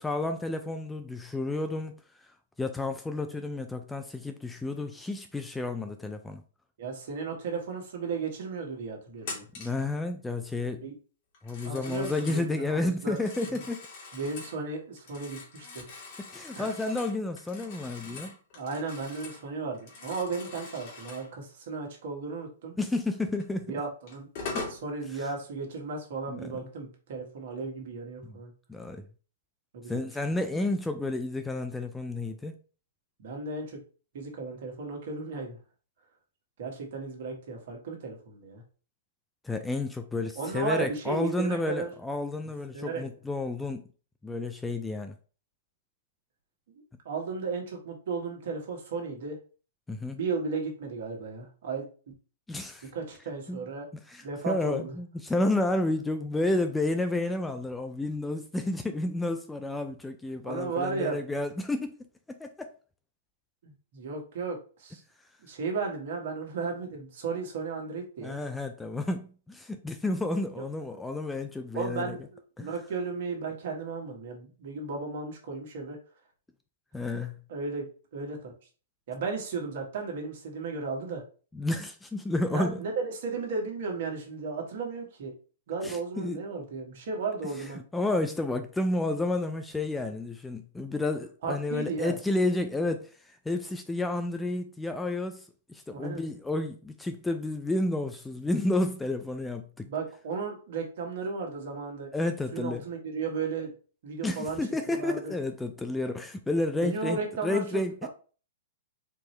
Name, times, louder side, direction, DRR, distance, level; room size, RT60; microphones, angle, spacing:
voice 1, 0.0-2.0 2.6-6.4 9.6-10.8 11.4-13.8 16.3-18.4 22.8-23.7 24.5-24.7 26.3-26.4 28.2-28.4 28.7-29.0 29.9-32.5 39.4-43.8 44.2-45.1 49.9-50.2 52.5-52.9 53.5-53.6 54.1-61.9 62.3-62.7 68.2-72.2 72.6-72.7 76.9-77.4 81.5-82.8 85.8-86.4 87.9-99.9 102.1-102.8 104.2-107.9, left 2 dB, 5° left, 0.4 m, -31 dB
voice 2, 6.8-9.5 10.8-10.9 11.6-13.2 14.1-15.8 16.5-16.7 18.5-22.7 23.7-24.3 24.7-28.5 29.7-30.0 30.3-30.4 33.2-33.8 34.1-35.6 36.6-38.6 40.3-41.9 42.7-43.0 46.7-49.4 50.1-51.9 52.8-53.9 54.2-54.9 60.4-61.2 63.6-65.0 65.4-68.4 70.6-70.7 71.7-76.0 77.5-78.5 79.1-81.2 82.5-85.3 85.7-87.8 91.4-92.2 95.9-96.2 99.8-102.1 102.5-103.7 104.0-104.6 104.9-105.3 106.8-107.8, right 4 dB, 60° right, 1.5 m, -35 dB
Telephone, 9.2-9.8 11.3-12.5 13.0-14.6 15.0-19.5 19.7-21.3 23.4-23.5 24.1-24.8, left 3 dB, 50° left, 2.0 m, -42 dB
4.4 x 2.7 x 3.2 m
hypercardioid pair, 135°, 0 cm